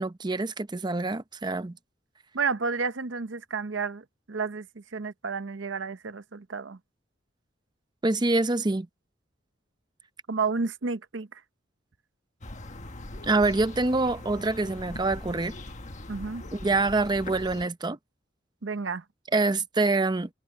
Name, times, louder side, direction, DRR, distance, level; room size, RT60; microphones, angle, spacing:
voice 1, 0.0-1.8 8.0-8.9 13.2-15.5 16.5-18.0 19.3-20.3, right 3 dB, 25° right, 0.6 m, -25 dB
voice 2, 2.3-6.8 10.3-11.3 16.1-16.4 18.6-19.0, right 4 dB, 75° right, 0.8 m, -31 dB
sound 1, 12.4-17.7, left 1 dB, 40° left, 1.4 m, -41 dB
head